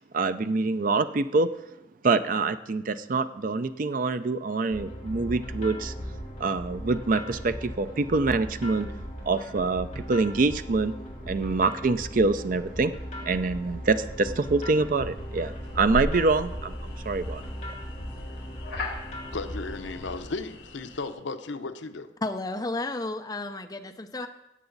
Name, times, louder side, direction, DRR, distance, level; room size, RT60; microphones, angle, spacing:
voice 1, 0.1-1.5 2.0-5.9 6.4-8.9 9.2-11.0 11.2-12.9 13.2-17.4, right 3 dB, 45° right, 11 dB, 0.5 m, -25 dB
sound 1, 4.7-20.2, equal, 35° left, 3.2 m, -38 dB
sound 2, 15.0-21.1, left 1 dB, 65° left, 3.6 m, -38 dB
voice 2, 19.3-22.1, left 3 dB, 80° left, 9 dB, 0.7 m, -35 dB
voice 3, 22.2-24.3, left 2 dB, 20° left, 7 dB, 0.6 m, -32 dB
17.5 x 8.0 x 4.0 m, 0.92 s
head